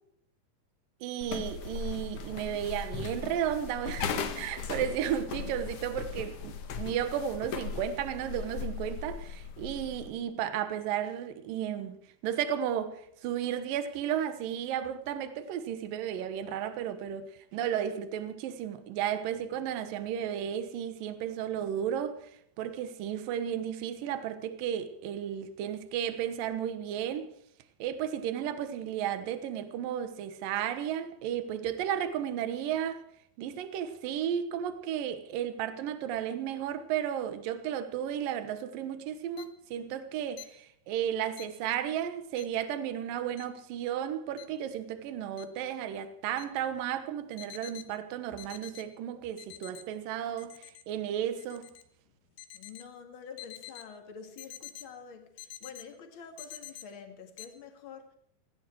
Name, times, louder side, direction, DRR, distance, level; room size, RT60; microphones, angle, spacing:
voice 1, 1.0-12.0 12.2-22.3 22.6-27.3 27.8-33.0 33.4-51.8, right 9 dB, 70° right, 2.7 m, -33 dB
sound 1, 1.2-10.1, left 6 dB, 60° left, 1.7 m, -38 dB
voice 2, 4.2-4.6 52.5-58.1, left 6 dB, 40° left, 2.5 m, -47 dB
sound 2, 39.4-39.5 40.4-40.5 41.4-41.5 42.4-42.5 43.4-43.5 44.4-44.5 45.4-45.5 46.4-46.5 47.4-47.8 48.4-48.8 49.4-49.8 50.4-50.8 51.4-51.8 52.4-52.8 53.4-53.8 54.4-54.8 55.4-55.8 56.4-56.8 57.4-57.5, left 14 dB, 75° left, 2.8 m, -45 dB
18.0 x 15.5 x 4.7 m
omnidirectional pair, 4.4 m